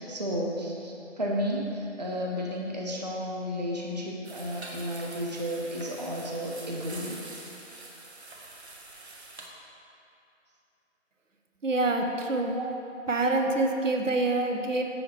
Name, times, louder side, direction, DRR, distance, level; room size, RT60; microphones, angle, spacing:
voice 1, 0.0-7.2 12.5-12.7, equal, 35° right, -2 dB, 0.5 m, -32 dB
sound 1, 4.2-9.5, right 2 dB, 60° right, 0.9 m, -45 dB
voice 2, 11.6-12.6 13.1-14.8, right 2 dB, 85° right, 3 dB, 0.8 m, -26 dB
7.1 x 6.4 x 3.2 m, 2.8 s
figure-of-eight pair, 160°, 38 cm